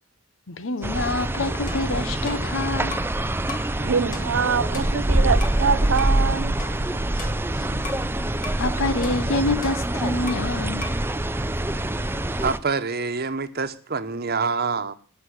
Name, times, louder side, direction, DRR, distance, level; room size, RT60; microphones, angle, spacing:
voice 1, 0.5-3.0 7.2-7.3 7.6-7.8 8.6-10.9, left 2 dB, 75° left, 1.0 m, -27 dB
sound 1, 0.8-12.6, right 1 dB, 10° right, 0.5 m, -25 dB
sound 2, 1.7-3.2 3.5-3.8 4.1-5.6 6.0-6.2 6.6-8.1 8.4-8.7 9.0-10.6 10.8-11.1, left 4 dB, 40° left, 1.9 m, -39 dB
voice 2, 3.8-6.5, right 6 dB, 75° right, 0.6 m, -25 dB
voice 3, 11.7-12.0 12.4-14.9, right 4 dB, 50° right, 1.1 m, -26 dB
19.0 x 6.4 x 6.5 m
head